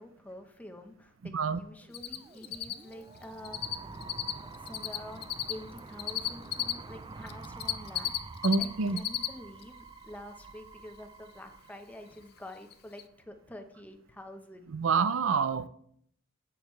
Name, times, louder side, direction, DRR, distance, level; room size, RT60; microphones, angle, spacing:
voice 1, 0.0-4.0 4.4-8.1 8.6-14.8, left 1 dB, 10° left, 0.9 m, -47 dB
voice 2, 1.2-1.6 8.4-9.0 14.7-15.7, right 5 dB, 75° right, 0.5 m, -27 dB
sound 1, 1.8-12.7, right 3 dB, 25° right, 0.4 m, -48 dB
Cricket, 1.9-2.2 2.4-6.7 7.3-8.6 8.9-9.3 9.6-9.7 12.2-12.3 12.7-12.8 13.0-13.1, left 12 dB, 55° left, 0.5 m, -32 dB
11.0 x 8.8 x 3.2 m
head